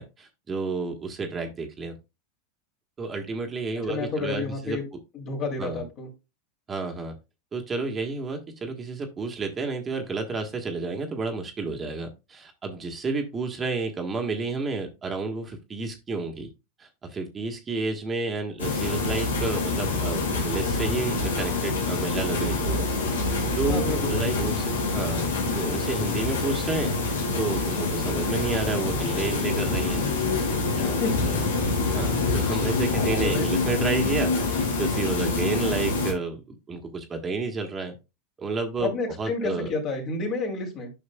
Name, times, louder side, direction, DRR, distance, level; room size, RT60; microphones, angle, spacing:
voice 1, 0.0-1.9 3.0-4.8 5.6-5.8 6.7-7.2 7.5-16.5 16.8-22.9 23.1-25.2 25.5-26.9 27.4-30.0 30.8-31.5 31.8-37.9 38.4-38.9 39.2-39.7, right 4 dB, 25° right, 4 dB, 1.3 m, -31 dB
voice 2, 3.9-4.9 5.1-6.1 23.7-24.2 31.0-31.1 33.2-33.5 38.8-40.9, left 3 dB, 45° left, 2 dB, 2.6 m, -30 dB
sound 1, 18.6-36.1, left 3 dB, 85° left, 1.8 m, -26 dB
9.7 x 5.6 x 2.2 m, 0.26 s
hypercardioid pair, 95°, 0 cm